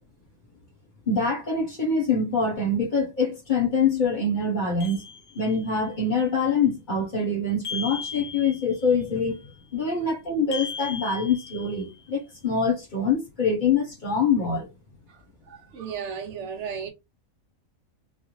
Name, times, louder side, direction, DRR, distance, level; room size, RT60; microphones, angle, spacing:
voice 1, 1.1-5.0 5.3-14.7, left 4 dB, 40° left, 0.9 m, -25 dB
sound 1, 4.8-5.8 7.6-8.9 10.5-12.0, left 6 dB, 80° left, 1.1 m, -37 dB
voice 2, 15.4-16.9, right 7 dB, 70° right, 0.8 m, -34 dB
2.6 x 2.3 x 2.9 m
omnidirectional pair, 1.4 m